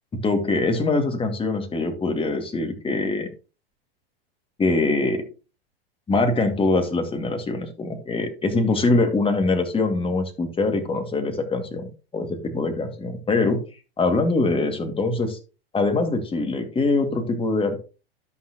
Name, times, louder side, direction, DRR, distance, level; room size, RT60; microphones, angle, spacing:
voice 1, 0.1-3.3 4.6-5.2 6.1-13.6 14.0-15.4 15.7-17.8, left 3 dB, 20° left, 6 dB, 2.3 m, -23 dB
13.0 x 5.7 x 3.0 m, 0.33 s
hypercardioid pair, 95°, 30 cm